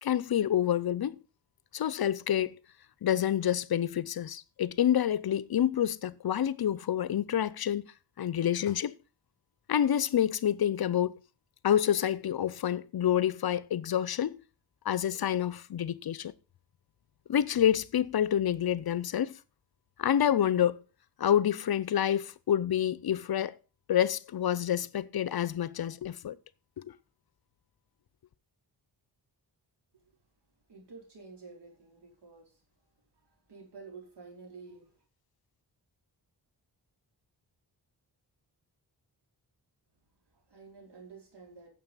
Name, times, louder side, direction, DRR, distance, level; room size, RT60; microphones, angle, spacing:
voice 1, 0.0-1.2 1.7-2.5 3.0-7.9 8.2-8.9 9.7-11.2 11.6-14.4 14.8-16.3 17.3-19.3 20.0-20.8 21.2-23.6 23.9-26.4 26.8-26.9, left 10 dB, 60° left, 0.6 m, -28 dB
voice 2, 29.9-35.1 39.9-41.7, right 4 dB, 70° right, 4.7 m, -52 dB
9.4 x 7.5 x 5.5 m
cardioid pair, 70°, 42 cm